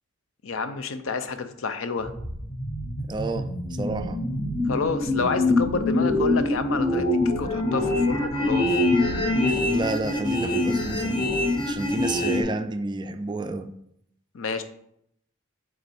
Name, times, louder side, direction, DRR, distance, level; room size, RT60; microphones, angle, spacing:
voice 1, 0.4-2.1 4.7-7.1 7.4-8.8 14.3-14.6, left 4 dB, 75° left, 0.5 m, -29 dB
sound 1, 2.0-12.4, left 2 dB, 25° left, 0.8 m, -24 dB
voice 2, 3.1-4.2 9.4-11.2 11.7-13.7, right 2 dB, 20° right, 0.3 m, -30 dB
6.3 x 3.6 x 4.2 m
head